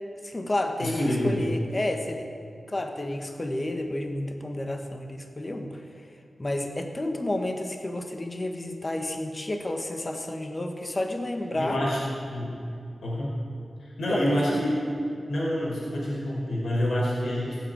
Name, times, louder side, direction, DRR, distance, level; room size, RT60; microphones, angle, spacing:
voice 1, 0.2-2.3 2.7-5.8 6.4-11.8 14.1-14.6, left 1 dB, 30° left, 5 dB, 1.4 m, -31 dB
voice 2, 0.8-1.4 11.5-12.0 12.3-12.5 13.0-13.3 13.8-14.8 15.3-17.6, equal, 90° left, -5 dB, 5.0 m, -27 dB
18.0 x 8.5 x 9.1 m, 2.5 s
wide cardioid pair, 120°, 0 cm